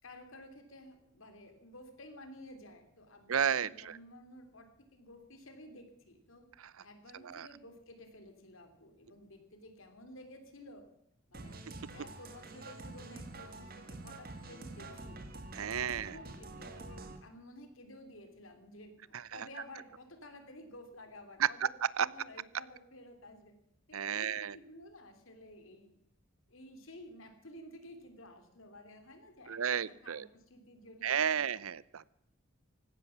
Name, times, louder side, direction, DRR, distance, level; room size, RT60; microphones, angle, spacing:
voice 1, 0.0-6.4 6.8-10.9 11.3-11.6 11.9-15.2 15.9-21.7 22.0-23.5 23.9-25.9 26.5-31.6, left 1 dB, 75° left, 7 dB, 3.2 m, -53 dB
voice 2, 3.3-4.0 7.2-7.5 15.6-16.1 21.4-21.5 22.0-22.1 23.9-24.5 29.5-30.3 31.0-32.1, right 8 dB, 90° right, 21 dB, 0.6 m, -32 dB
sound 1, 11.3-17.2, right 2 dB, 45° right, 1.9 m, -47 dB
16.5 x 13.0 x 5.9 m, 0.77 s
head